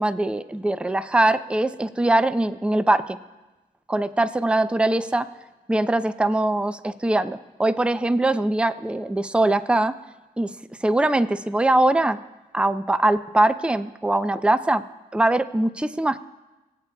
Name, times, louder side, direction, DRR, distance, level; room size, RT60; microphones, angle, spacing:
voice 1, 0.0-3.2 3.9-5.3 5.7-9.9 10.4-10.5 10.8-12.2 12.5-14.8 15.1-16.2, right 2 dB, 5° right, 13 dB, 0.5 m, -22 dB
24.0 x 8.4 x 2.3 m, 1.1 s
supercardioid pair, 45°, 16 cm